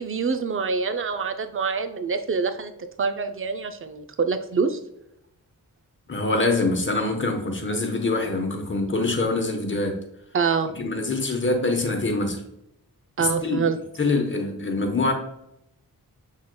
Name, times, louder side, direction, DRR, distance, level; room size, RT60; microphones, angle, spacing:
voice 1, 0.0-2.7 3.0-4.8 10.3-10.7 13.2-13.8, right 5 dB, 35° right, 0.5 m, -25 dB
voice 2, 6.1-10.0 10.7-12.4 13.2-13.7 14.0-15.1, left 2 dB, 30° left, 1.0 m, -24 dB
6.2 x 3.6 x 2.2 m
cardioid pair, 75°, 37 cm